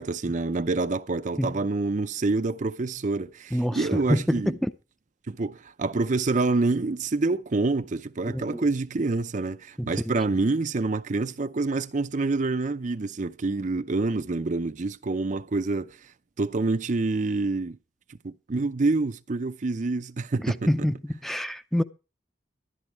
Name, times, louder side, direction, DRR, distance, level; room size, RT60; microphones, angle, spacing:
voice 1, 0.0-4.6 5.3-16.0 16.4-17.8 18.2-20.7, right 3 dB, 45° right, 0.5 m, -27 dB
voice 2, 3.5-4.7 8.3-8.6 9.8-10.1 20.4-21.8, equal, ahead, 0.6 m, -27 dB
12.5 x 11.0 x 4.5 m
head